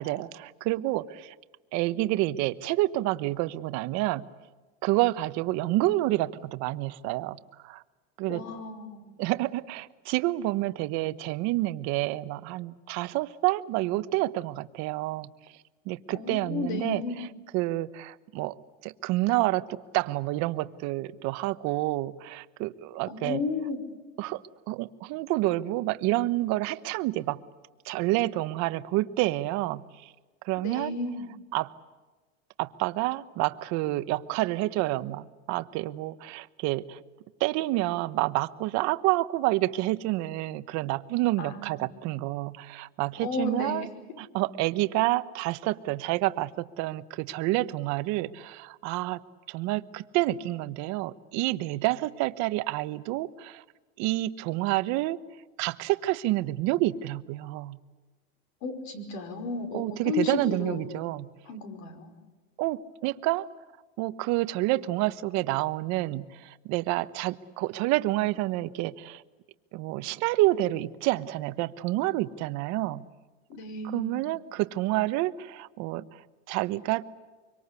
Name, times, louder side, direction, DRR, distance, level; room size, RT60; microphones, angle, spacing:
voice 1, 0.0-1.3 1.7-4.3 4.8-7.8 8.2-8.4 9.2-15.3 15.8-17.3 17.5-18.5 18.8-23.4 24.2-24.4 24.7-27.4 27.8-30.1 30.4-31.0 31.5-31.7 32.6-37.0 37.4-43.9 44.2-49.2 49.5-53.6 54.0-55.2 55.6-57.8 59.7-61.3 62.6-63.5 64.0-69.2 69.7-73.0 73.9-76.1 76.5-77.0, right 17 dB, 60° right, 14 dB, 1.1 m, -28 dB
voice 2, 8.3-9.1 16.1-17.3 23.1-23.8 30.6-31.3 41.4-42.0 43.2-43.9 58.6-61.0 61.5-62.2 73.5-74.3, left 4 dB, 60° left, 8 dB, 5.4 m, -34 dB
25.0 x 24.5 x 8.3 m, 1.3 s
supercardioid pair, 140°, 32 cm